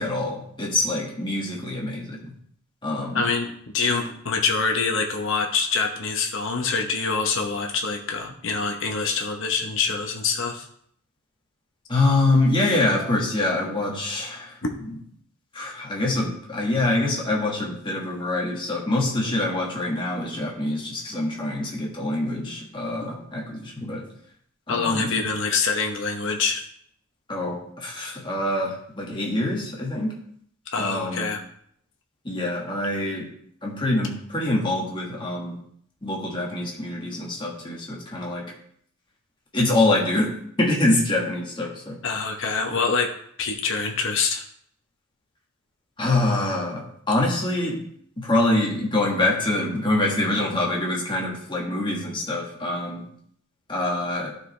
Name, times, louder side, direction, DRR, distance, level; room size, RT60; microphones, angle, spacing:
voice 1, 0.0-2.2 2.8-3.2 11.9-14.6 15.5-24.0 24.7-25.2 27.3-30.1 30.8-31.3 32.2-33.3 33.6-35.6 36.0-38.5 39.5-40.3 40.6-42.0 46.0-47.8 48.2-53.1 53.7-54.3, left 2 dB, 20° left, -2 dB, 1.5 m, -25 dB
voice 2, 3.1-3.5 3.7-10.7 24.7-26.6 30.7-31.4 42.0-43.1 43.4-44.4, left 4 dB, 60° left, 2 dB, 1.0 m, -25 dB
11.5 x 4.9 x 3.3 m, 0.67 s
head